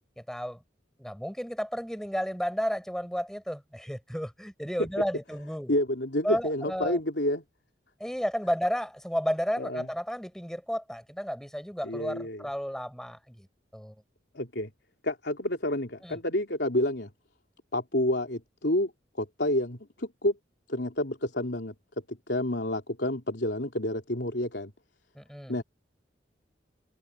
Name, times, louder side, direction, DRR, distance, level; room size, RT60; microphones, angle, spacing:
voice 1, 0.2-0.6 1.0-5.7 6.2-7.0 8.0-13.5 13.7-13.9 16.0-16.2 25.1-25.6, equal, 5° left, 6.2 m, -32 dB
voice 2, 5.7-7.4 9.6-9.9 11.8-12.4 14.3-14.7 15.0-17.1 17.7-18.9 19.2-20.4 20.7-21.7 22.1-24.7 25.5-25.6, left 1 dB, 65° left, 3.3 m, -29 dB
head